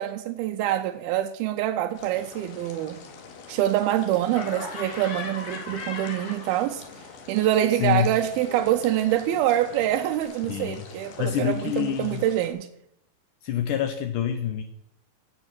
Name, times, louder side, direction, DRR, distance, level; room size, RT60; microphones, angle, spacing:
voice 1, 0.0-3.0 3.5-6.8 7.3-12.7, right 12 dB, 80° right, 2.3 m, -25 dB
sound 1, 1.9-12.5, left 5 dB, 65° left, 3.5 m, -45 dB
Laughter, 4.3-7.0 7.3-10.2, left 4 dB, 40° left, 3.1 m, -40 dB
voice 2, 10.4-10.9 11.2-12.2 13.4-14.6, left 10 dB, 80° left, 1.8 m, -26 dB
17.0 x 7.1 x 6.1 m
omnidirectional pair, 4.9 m